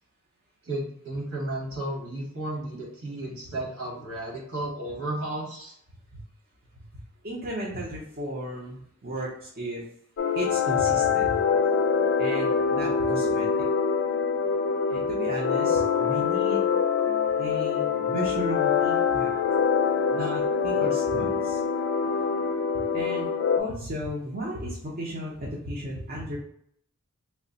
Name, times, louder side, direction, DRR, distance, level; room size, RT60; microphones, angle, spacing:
voice 1, 0.6-5.7, right 1 dB, 75° right, -2 dB, 1.4 m, -33 dB
voice 2, 6.7-9.8 10.3-11.4 12.2-13.5 14.9-16.7 17.4-19.3 20.1-21.6 22.7-23.3 23.6-26.4, right 1 dB, 40° right, -4 dB, 0.6 m, -35 dB
sound 1, 10.2-23.6, left 6 dB, 55° left, 0.3 m, -24 dB
3.2 x 2.1 x 3.8 m, 0.68 s
head